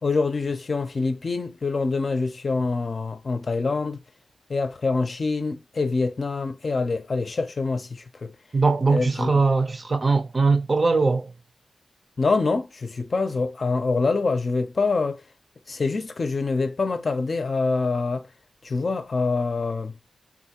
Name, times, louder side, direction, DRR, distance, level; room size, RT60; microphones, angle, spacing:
voice 1, 0.0-4.0 4.5-8.3 8.9-9.3 12.2-15.2 15.7-18.2 18.6-20.0, left 3 dB, 45° left, 0.6 m, -25 dB
voice 2, 8.5-11.3, right 4 dB, 35° right, 0.6 m, -21 dB
3.9 x 2.3 x 2.9 m
wide cardioid pair, 110°, 0 cm